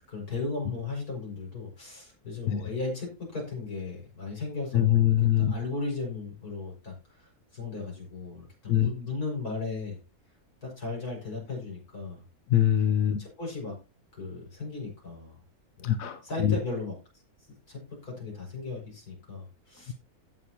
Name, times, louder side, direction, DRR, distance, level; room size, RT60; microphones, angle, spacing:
voice 1, 0.1-10.0 10.6-12.2 13.1-13.8 14.2-15.3 15.8-15.9 16.2-17.0 17.7-19.9, left 3 dB, 85° left, 5.9 m, -36 dB
voice 2, 4.7-5.5 8.7-8.9 12.5-13.2 15.8-16.6, left 11 dB, 65° left, 1.1 m, -23 dB
16.5 x 6.4 x 2.8 m
omnidirectional pair, 1.6 m